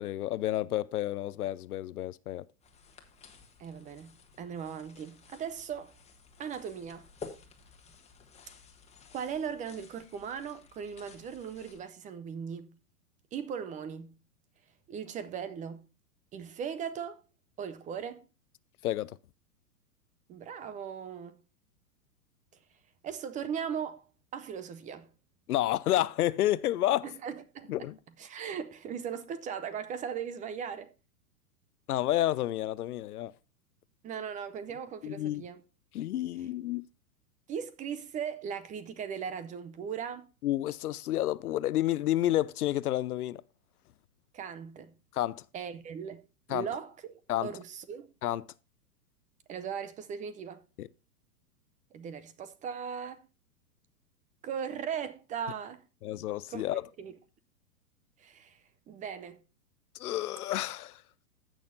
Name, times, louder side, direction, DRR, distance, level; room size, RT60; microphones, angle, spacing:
voice 1, 0.0-2.4 18.8-19.1 25.5-27.1 27.7-28.0 31.9-33.3 35.0-35.4 35.9-36.8 40.4-43.4 45.1-45.4 46.5-46.7 47.3-47.5 48.2-48.5 50.8-50.9 56.0-56.8 59.9-61.0, left 14 dB, 70° left, 0.7 m, -30 dB
sound 1, 2.6-11.8, left 4 dB, 15° left, 1.5 m, -53 dB
voice 2, 3.6-5.9 6.4-7.1 9.1-12.7 13.3-14.1 14.9-15.8 16.3-17.2 17.6-18.3 20.3-21.4 23.0-24.1 24.3-25.1 27.0-27.9 28.2-30.9 34.0-35.6 37.5-40.3 44.3-44.9 45.5-46.2 46.5-48.1 49.5-50.6 51.9-53.3 54.4-55.8 56.5-56.6 57.0-57.1 58.2-58.6 58.9-59.4, right 7 dB, 15° right, 0.6 m, -38 dB
15.0 x 6.4 x 2.6 m
hypercardioid pair, 120°, 47 cm